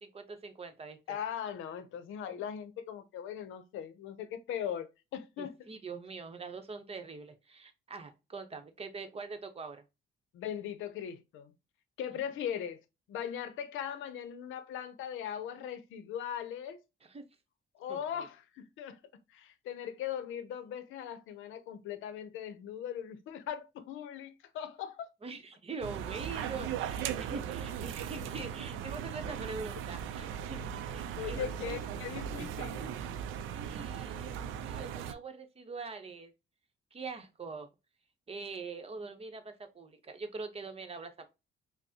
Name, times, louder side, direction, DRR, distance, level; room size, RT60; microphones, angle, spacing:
voice 1, 0.0-1.2 5.4-9.8 17.0-17.3 17.9-18.3 25.2-31.7 33.5-36.3 36.9-37.7 38.3-41.3, right 4 dB, 30° right, 0.8 m, -43 dB
voice 2, 1.1-5.6 10.3-11.5 12.0-12.8 13.1-16.8 17.7-19.0 19.3-25.0 31.2-32.9, left 9 dB, 85° left, 0.6 m, -39 dB
sound 1, 25.8-35.1, right 9 dB, 90° right, 0.4 m, -38 dB
5.3 x 2.0 x 2.7 m
cardioid pair, 90°, 20 cm